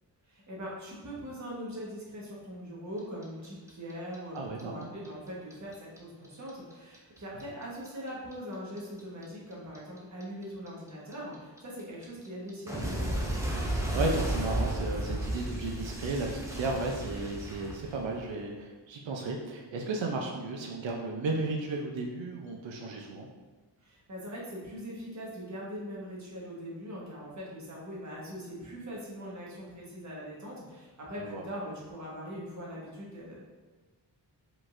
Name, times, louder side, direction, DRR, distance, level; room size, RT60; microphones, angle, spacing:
voice 1, 0.3-13.3 23.8-33.4, equal, 40° right, -5 dB, 1.3 m, -41 dB
Clock, 3.0-6.0 6.2-9.2 9.5-18.4, right 1 dB, 5° right, 0.6 m, -33 dB
voice 2, 4.3-4.9 13.9-23.3 31.2-31.4, right 3 dB, 90° right, 0 dB, 0.6 m, -34 dB
4.8 x 3.9 x 2.5 m, 1.4 s
wide cardioid pair, 150°, 44 cm